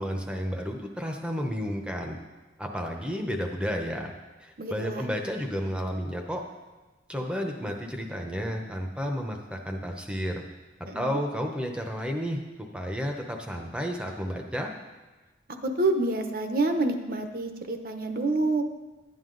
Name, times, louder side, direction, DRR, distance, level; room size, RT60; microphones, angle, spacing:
voice 1, 0.0-2.2 2.6-4.1 4.4-6.4 7.1-10.4 10.9-14.7, equal, 5° right, 2 dB, 0.8 m, -32 dB
voice 2, 4.6-5.1 10.8-11.2 15.8-18.6, right 2 dB, 50° right, 6 dB, 0.8 m, -27 dB
11.5 x 9.4 x 3.9 m, 1.2 s
head